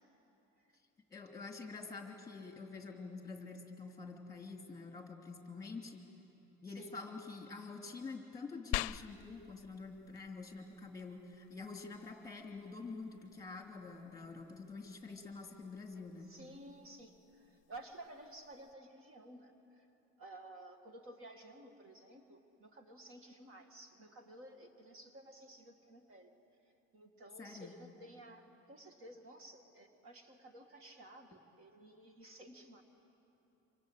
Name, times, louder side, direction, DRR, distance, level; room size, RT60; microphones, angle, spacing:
voice 1, 1.1-6.0 6.6-16.3 27.4-27.7, left 4 dB, 15° left, 2 dB, 2.8 m, -47 dB
sound 1, 8.7-18.7, left 18 dB, 75° left, 0.5 m, -48 dB
voice 2, 16.3-19.9 20.2-26.3 26.9-32.8, right 1 dB, 45° right, 5 dB, 2.1 m, -54 dB
27.5 x 26.0 x 8.1 m, 2.9 s
cardioid pair, 150°, 29 cm